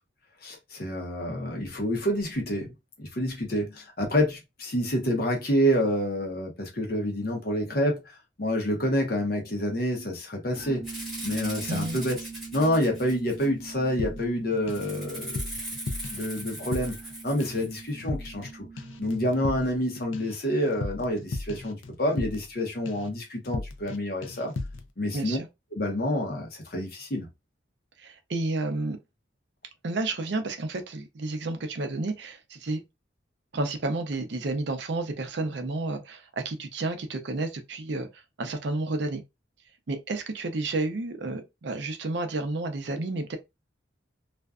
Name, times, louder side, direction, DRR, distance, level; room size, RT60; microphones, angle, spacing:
voice 1, 0.4-10.9 11.2-12.2 12.5-15.4 16.1-17.0 17.2-18.7 19.0-24.5 25.0-25.4 25.7-27.3, equal, 50° left, 0.8 m, -28 dB
sound 1, 10.5-19.8, right 4 dB, 35° right, 0.8 m, -44 dB
Rattle (instrument), 10.8-13.7 14.7-17.9, right 1 dB, ahead, 1.0 m, -39 dB
voice 2, 11.7-12.0 25.1-25.5 28.0-29.0 29.8-32.8 33.5-39.2 39.9-43.4, right 2 dB, 65° right, 0.5 m, -31 dB
sound 2, 14.0-14.9 15.2-17.1 17.4-17.7 18.0-18.5 18.8-22.6 22.9-23.2 23.5-24.0 24.2-24.9, left 2 dB, 85° left, 0.4 m, -36 dB
2.5 x 2.2 x 2.3 m
head